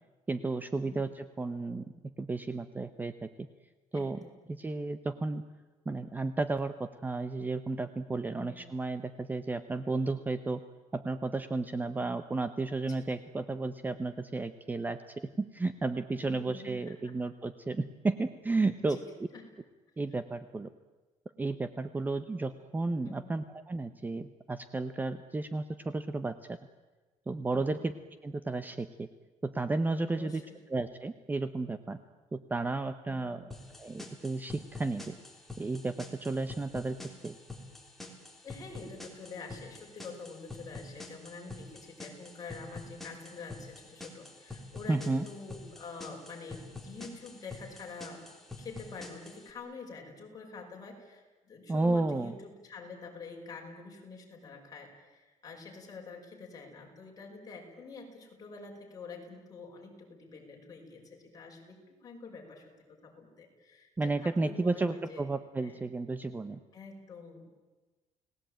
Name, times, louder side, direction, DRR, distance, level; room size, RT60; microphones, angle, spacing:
voice 1, 0.3-1.9 2.2-3.3 3.9-4.2 4.5-5.4 5.9-10.6 10.9-15.0 15.4-19.0 20.0-20.7 21.4-26.6 27.3-27.9 28.2-29.1 29.4-30.4 30.7-32.0 32.3-33.4 33.8-35.2 35.6-37.0 37.2-37.3 44.9-45.2 51.7-52.3 64.0-66.6, right 3 dB, 15° right, 12 dB, 0.8 m, -33 dB
voice 2, 3.9-4.3 8.3-8.6 12.9-13.0 16.2-17.2 18.8-19.0 19.3-19.5 23.1-23.4 27.5-27.8 30.1-30.6 33.1-33.4 38.4-65.3 65.6-65.8 66.7-67.5, left 4 dB, 30° left, 0 dB, 5.8 m, -47 dB
sound 1, 33.5-49.5, left 2 dB, ahead, 3.4 m, -47 dB
30.0 x 19.0 x 9.1 m, 1.2 s
cardioid pair, 160°, 13 cm